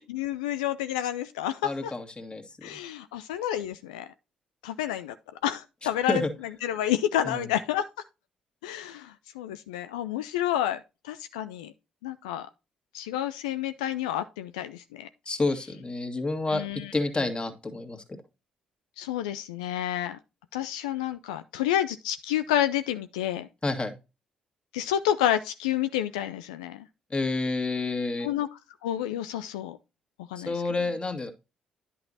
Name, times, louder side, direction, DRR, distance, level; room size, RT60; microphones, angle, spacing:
voice 1, 0.0-1.9 2.6-4.1 4.6-5.1 5.4-6.2 6.6-7.9 8.6-11.7 12.0-12.5 12.9-15.1 16.5-16.9 19.0-20.2 20.5-23.5 24.7-26.9 28.2-29.8 30.3-30.6, left 11 dB, 80° left, 0.4 m, -29 dB
voice 2, 1.6-2.4 2.7-2.8 6.1-6.3 7.2-7.5 15.3-16.6 16.9-18.0 23.6-23.9 27.1-28.3 30.4-31.3, left 3 dB, 25° left, 2.0 m, -29 dB
10.5 x 5.8 x 2.7 m
hypercardioid pair, 45°, 4 cm